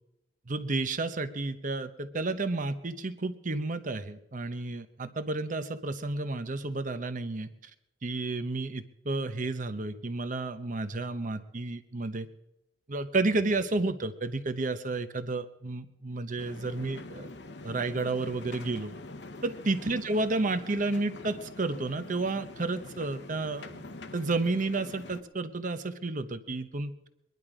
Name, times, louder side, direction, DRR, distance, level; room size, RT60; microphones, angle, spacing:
voice 1, 0.5-7.5 8.0-12.3 12.9-17.3 17.6-18.9 19.4-23.8 24.1-26.9, right 3 dB, 50° right, 11 dB, 0.9 m, -31 dB
sound 1, 16.4-25.2, left 2 dB, 70° left, 1.0 m, -45 dB
21.5 x 11.0 x 5.0 m, 0.87 s
head